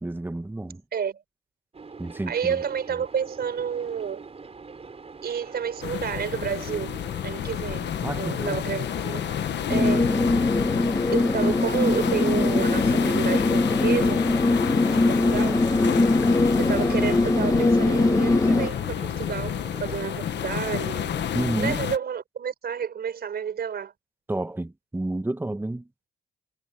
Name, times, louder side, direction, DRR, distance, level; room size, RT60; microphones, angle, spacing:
voice 1, 0.0-0.8 2.0-2.6 8.0-8.6 21.3-21.8 24.3-25.9, right 2 dB, 10° right, 1.4 m, -30 dB
voice 2, 0.9-1.2 2.3-4.3 5.2-7.0 7.2-7.9 8.2-9.2 9.7-10.2 11.1-14.2 15.1-15.7 16.6-21.1 21.6-23.9, right 7 dB, 55° right, 4.7 m, -30 dB
sound 1, 1.7-21.6, right 4 dB, 30° right, 5.3 m, -43 dB
sound 2, 5.8-22.0, left 10 dB, 65° left, 1.2 m, -30 dB
sound 3, 9.7-18.7, left 2 dB, 15° left, 1.5 m, -22 dB
cardioid pair, 90°, 20 cm